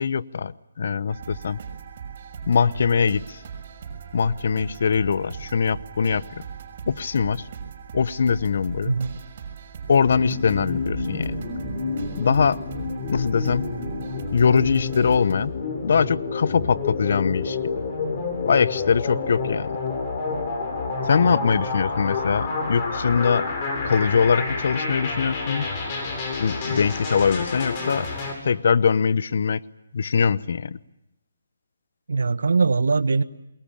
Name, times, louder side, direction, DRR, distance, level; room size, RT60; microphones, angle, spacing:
voice 1, 0.0-1.6 2.5-3.4 4.1-6.2 6.9-7.4 7.9-8.9 9.9-11.4 12.2-12.6 13.1-13.7 14.3-15.5 15.8-17.6 18.5-19.7 21.1-23.5 23.8-25.7 26.4-28.1 28.4-29.6 29.9-30.8, left 6 dB, 60° left, 18 dB, 0.9 m, -22 dB
sound 1, 1.1-15.3, right 7 dB, 45° right, 6.5 m, -39 dB
voice 2, 8.8-9.2 21.2-21.7 32.1-33.2, right 4 dB, 75° right, 14 dB, 1.4 m, -22 dB
sound 2, 10.0-28.3, left 4 dB, 30° left, 7.9 m, -29 dB
26.5 x 22.5 x 8.6 m, 0.90 s
hypercardioid pair, 150°, 0 cm